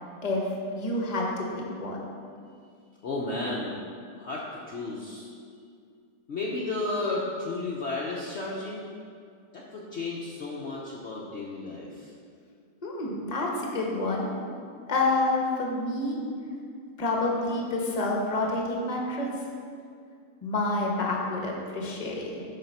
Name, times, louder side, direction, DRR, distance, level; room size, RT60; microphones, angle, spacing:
voice 1, 0.7-2.1 12.8-14.3 14.9-16.2 17.0-19.4 20.4-22.4, left 2 dB, 30° left, -1 dB, 1.1 m, -28 dB
voice 2, 3.0-3.8 4.2-5.3 6.3-8.9 9.5-12.1, left 2 dB, 50° left, -4 dB, 1.0 m, -33 dB
7.5 x 5.1 x 5.5 m, 2.2 s
omnidirectional pair, 1.7 m